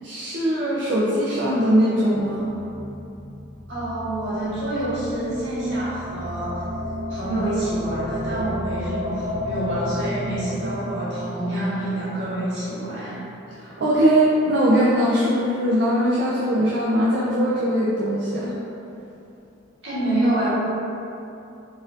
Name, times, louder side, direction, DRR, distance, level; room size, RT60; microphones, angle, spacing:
voice 1, 0.0-2.5 13.5-18.5, equal, 60° right, -7 dB, 0.4 m, -21 dB
sound 1, 2.2-14.4, left 1 dB, 10° right, 1.1 m, -33 dB
voice 2, 3.7-6.6 7.1-13.2 19.8-20.5, right 1 dB, 75° right, -11 dB, 1.4 m, -27 dB
4.0 x 2.5 x 2.6 m, 2.8 s
head